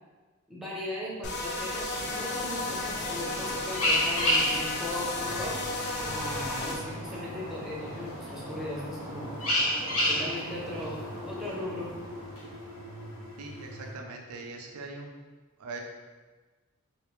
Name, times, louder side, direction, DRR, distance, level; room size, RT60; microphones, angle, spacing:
voice 1, 0.5-9.4 10.1-11.0 11.3-11.9, left 1 dB, ahead, -6 dB, 0.6 m, -38 dB
sound 1, 1.2-6.8, left 2 dB, 50° left, 0.5 m, -33 dB
sound 2, 2.0-12.9, equal, 85° left, 1.2 m, -32 dB
sound 3, 4.9-13.9, equal, 70° left, 1.1 m, -44 dB
voice 2, 13.4-15.1 15.6-15.8, right 3 dB, 85° right, 1 dB, 0.5 m, -41 dB
3.1 x 2.8 x 3.1 m, 1.3 s
head